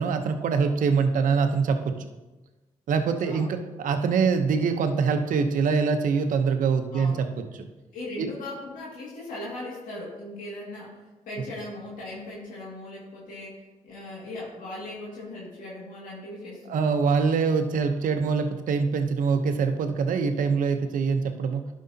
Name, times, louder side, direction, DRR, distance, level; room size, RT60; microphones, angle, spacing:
voice 1, 0.0-2.1 2.9-7.7 8.2-8.3 16.7-21.6, right 5 dB, 75° right, 7 dB, 0.8 m, -24 dB
voice 2, 6.9-7.6 7.9-11.0 11.3-17.0, left 1 dB, 80° left, -5 dB, 2.1 m, -39 dB
11.0 x 6.2 x 2.8 m, 1.1 s
supercardioid pair, 60°, 14 cm